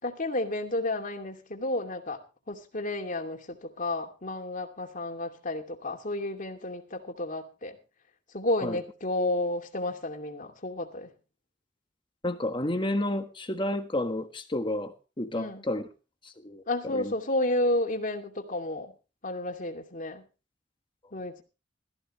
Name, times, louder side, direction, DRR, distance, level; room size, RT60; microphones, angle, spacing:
voice 1, 0.0-2.2 2.5-7.8 8.3-11.1 15.3-15.6 16.7-18.9 19.2-20.3 21.1-21.4, left 1 dB, 45° left, 4 dB, 2.7 m, -31 dB
voice 2, 12.2-15.9 16.2-17.1, left 1 dB, 25° left, 7 dB, 1.5 m, -31 dB
17.5 x 14.5 x 3.2 m, 0.33 s
head